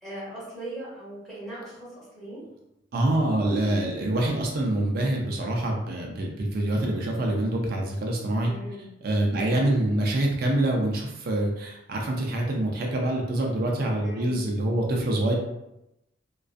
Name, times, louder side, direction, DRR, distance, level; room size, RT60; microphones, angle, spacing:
voice 1, 0.0-2.4 8.4-8.9 9.3-9.6 14.0-14.4, right 1 dB, ahead, -10 dB, 1.1 m, -39 dB
voice 2, 2.9-8.5 9.0-15.3, right 1 dB, 55° right, 0 dB, 0.4 m, -25 dB
2.4 x 2.3 x 2.4 m, 0.87 s
head